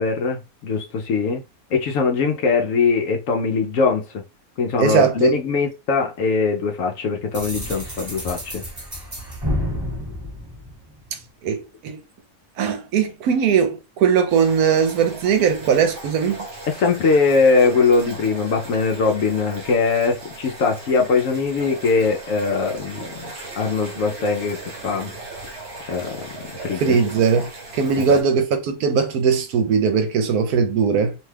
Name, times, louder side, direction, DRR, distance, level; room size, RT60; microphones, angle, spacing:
voice 1, 0.0-1.4 1.7-4.2 4.6-8.6 16.7-25.1 25.4-25.6 25.9-27.0 28.0-28.2, left 4 dB, 70° left, 0.9 m, -21 dB
voice 2, 4.8-5.4 11.1-12.0 12.6-16.5 26.8-31.2, right 6 dB, 75° right, 1.1 m, -20 dB
sound 1, 7.3-11.2, left 1 dB, 15° right, 1.0 m, -30 dB
sound 2, 14.3-28.2, right 2 dB, 50° right, 1.1 m, -38 dB
2.8 x 2.2 x 3.2 m
omnidirectional pair, 1.6 m